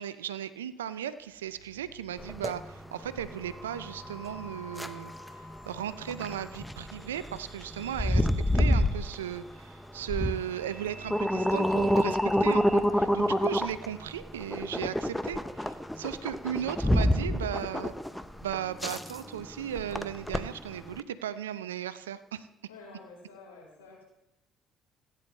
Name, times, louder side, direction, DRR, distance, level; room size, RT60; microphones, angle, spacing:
voice 1, 0.0-8.3 8.5-17.9 18.4-22.5, right 10 dB, 85° right, 14 dB, 0.5 m, -36 dB
sound 1, 1.1-12.8, right 1 dB, 15° right, 5.3 m, -49 dB
sound 2, 2.2-21.0, equal, 5° left, 0.8 m, -29 dB
voice 2, 12.8-13.3 22.7-24.0, left 3 dB, 85° left, -3 dB, 4.3 m, -50 dB
17.0 x 9.9 x 3.3 m, 0.91 s
hypercardioid pair, 50°, 0 cm